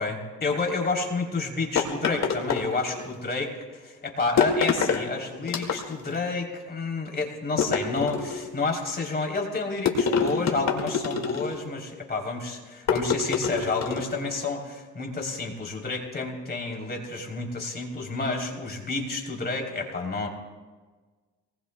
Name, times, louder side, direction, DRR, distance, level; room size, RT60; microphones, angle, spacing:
voice 1, 0.0-20.3, left 3 dB, 35° left, 1 dB, 3.4 m, -30 dB
sound 1, 1.8-3.1 4.4-5.0 5.5-6.2 7.6-8.5 9.9-11.6 12.9-14.2, left 6 dB, 60° left, 2.2 m, -26 dB
27.5 x 20.0 x 2.3 m, 1.4 s
cardioid pair, 90°, 30 cm